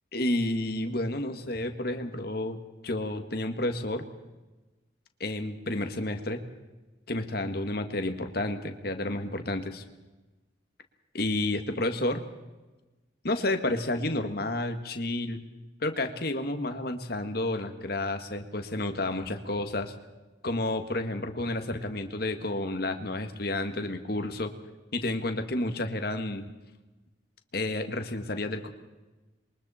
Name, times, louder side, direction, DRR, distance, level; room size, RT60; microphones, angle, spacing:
voice 1, 0.1-2.6 2.8-4.0 5.2-6.4 7.1-9.8 11.1-12.2 13.2-15.4 15.8-19.9 20.4-24.5 24.9-26.5 27.5-28.7, left 2 dB, 55° left, 7 dB, 1.8 m, -30 dB
27.5 x 23.0 x 4.4 m, 1.1 s
head